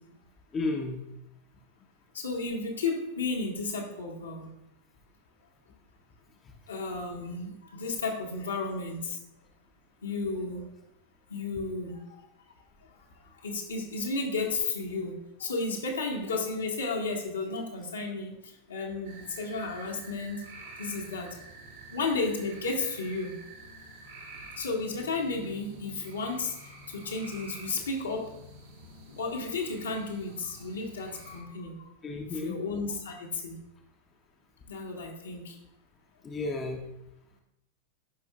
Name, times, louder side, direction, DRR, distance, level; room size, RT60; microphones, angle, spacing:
voice 1, 0.5-1.0 32.0-32.6 36.2-36.8, left 2 dB, 25° left, 2 dB, 0.9 m, -32 dB
voice 2, 2.1-4.5 6.7-9.2 10.0-10.7 11.3-12.3 13.3-15.1 15.4-20.4 20.8-21.3 21.9-23.3 24.6-26.5 26.9-28.2 29.1-31.9 32.3-33.5 34.7-35.6, left 3 dB, 70° left, -1 dB, 1.6 m, -33 dB
sound 1, 19.0-31.4, right 2 dB, 60° right, 1.8 m, -49 dB
14.0 x 5.5 x 2.4 m, 0.84 s
figure-of-eight pair, 90°, 0 cm